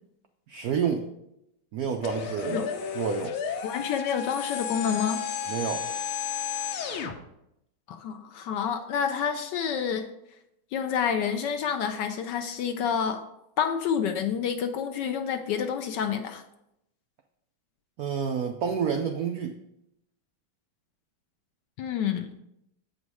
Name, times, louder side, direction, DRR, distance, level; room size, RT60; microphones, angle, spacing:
voice 1, 0.5-1.1 1.7-2.7 2.9-3.4 5.5-5.9 18.0-19.6, right 7 dB, 85° right, 5 dB, 0.8 m, -29 dB
sound 1, 2.0-7.1, left 7 dB, 90° left, 1.7 m, -32 dB
voice 2, 3.6-5.2 7.9-10.1 10.7-13.2 13.6-16.4 21.8-22.4, left 7 dB, 70° left, 7 dB, 1.1 m, -28 dB
7.8 x 5.2 x 4.8 m, 0.82 s
omnidirectional pair, 2.3 m